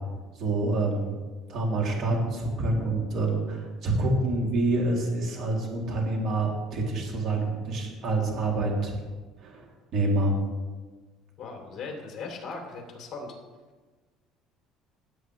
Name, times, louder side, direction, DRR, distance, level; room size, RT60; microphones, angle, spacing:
voice 1, 0.4-1.2 1.5-8.9 9.4-9.6 9.9-10.4, right 2 dB, 55° right, -1 dB, 2.8 m, -27 dB
voice 2, 11.4-13.3, left 4 dB, 40° left, 1 dB, 2.9 m, -38 dB
16.5 x 8.2 x 3.2 m, 1.3 s
cardioid pair, 130°, 0 cm